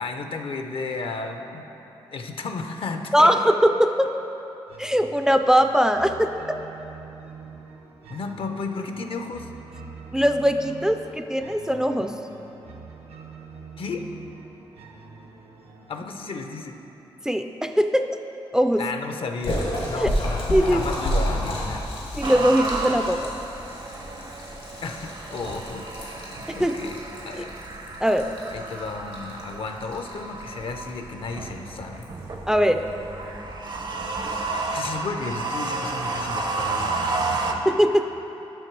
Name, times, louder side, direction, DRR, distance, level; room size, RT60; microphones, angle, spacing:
voice 1, 0.0-1.7 2.1-3.3 8.1-9.5 13.8-14.1 15.9-16.8 18.8-21.9 24.8-27.6 28.5-32.1 34.4-37.7, left 4 dB, 60° left, 6 dB, 0.6 m, -33 dB
voice 2, 3.1-4.1 4.8-6.3 10.1-12.2 17.2-18.0 18.5-18.8 20.0-20.1 20.5-20.8 22.1-23.3 26.5-26.9 28.0-28.2 32.5-32.8 37.7-38.1, equal, 5° right, 7 dB, 0.4 m, -20 dB
sound 1, 4.7-17.7, right 5 dB, 80° right, 0.8 m, -45 dB
Splash splatter, 19.4-34.4, equal, 85° left, 1.8 m, -33 dB
sound 2, 22.2-37.5, right 3 dB, 45° right, 0.7 m, -32 dB
7.9 x 5.9 x 4.6 m, 3.0 s
cardioid pair, 65°, 10 cm